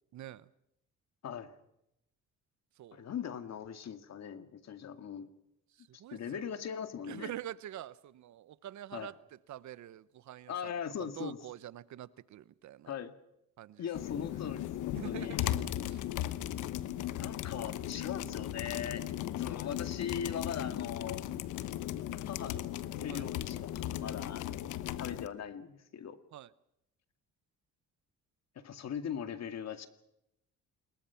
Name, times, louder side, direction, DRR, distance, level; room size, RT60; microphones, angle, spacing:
voice 1, 0.1-0.5 2.8-3.0 5.8-6.5 7.0-9.1 9.5-10.7 11.0-12.9 13.6-13.8 15.0-16.0 23.1-23.2 26.3-26.5, right 12 dB, 70° right, 17 dB, 0.9 m, -46 dB
voice 2, 1.2-1.5 2.9-5.3 6.1-7.3 8.9-9.1 10.5-11.4 12.9-13.1 13.8-15.4 17.2-19.0 19.4-21.3 22.2-22.7 23.0-26.2 28.6-29.9, left 8 dB, 60° left, 9 dB, 2.2 m, -40 dB
sound 1, 13.9-25.3, left 12 dB, 85° left, 1.1 m, -37 dB
27.0 x 22.0 x 5.8 m, 0.81 s
cardioid pair, 90°, 30 cm